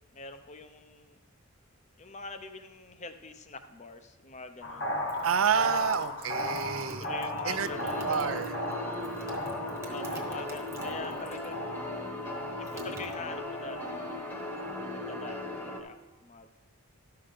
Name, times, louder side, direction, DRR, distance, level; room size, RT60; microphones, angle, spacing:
voice 1, 0.1-1.2 2.0-4.9 5.5-6.2 7.0-8.5 9.9-12.1 12.6-14.4 14.9-16.5, left 3 dB, 30° left, 8 dB, 0.6 m, -44 dB
sound 1, 4.6-14.8, left 1 dB, 55° left, 1.1 m, -37 dB
sound 2, 5.0-11.6 11.9-13.8, right 1 dB, 15° right, 1.0 m, -47 dB
voice 2, 5.2-7.1 7.4-7.7 8.0-8.6, right 7 dB, 65° right, 13 dB, 0.5 m, -28 dB
sound 3, 7.6-15.8, left 1 dB, 10° left, 1.0 m, -38 dB
12.5 x 5.8 x 5.0 m, 1.1 s
head